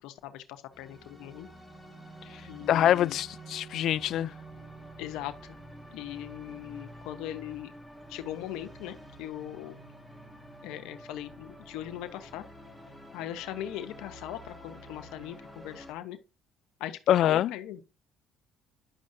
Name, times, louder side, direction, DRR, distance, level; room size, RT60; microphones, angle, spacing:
voice 1, 0.0-1.5 2.5-3.2 5.0-5.5 5.9-7.7 8.1-9.7 10.6-12.4 13.1-16.2 16.8-17.8, left 12 dB, 80° left, 0.8 m, -40 dB
sound 1, 0.7-15.9, right 1 dB, ahead, 1.6 m, -48 dB
voice 2, 2.7-4.3 17.1-17.5, left 11 dB, 65° left, 0.3 m, -24 dB
10.0 x 6.3 x 2.6 m
supercardioid pair, 90°, 0 cm